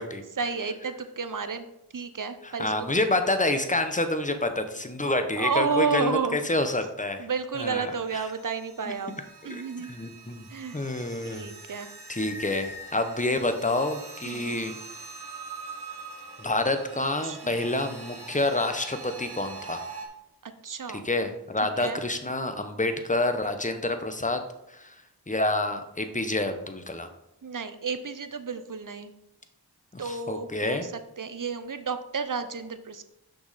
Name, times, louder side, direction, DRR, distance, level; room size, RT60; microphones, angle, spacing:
voice 1, 0.4-1.7 1.9-2.7 5.4-6.6 7.2-9.1 9.4-9.9 10.5-10.8 11.2-11.9 14.2-14.6 16.9-17.6 20.4-21.0 21.6-22.0 27.4-29.1 30.0-33.0, right 5 dB, 50° right, 10 dB, 0.7 m, -31 dB
voice 2, 2.4-7.3 7.6-8.2 9.5-10.5 10.7-11.5 12.1-14.7 16.4-19.8 20.9-24.4 24.7-24.9 25.3-27.1 29.9-30.9, left 2 dB, 20° left, 7 dB, 0.8 m, -28 dB
sound 1, 8.0-20.1, right 3 dB, 70° right, 1.3 m, -43 dB
6.2 x 6.0 x 4.1 m, 0.85 s
wide cardioid pair, 40°, 41 cm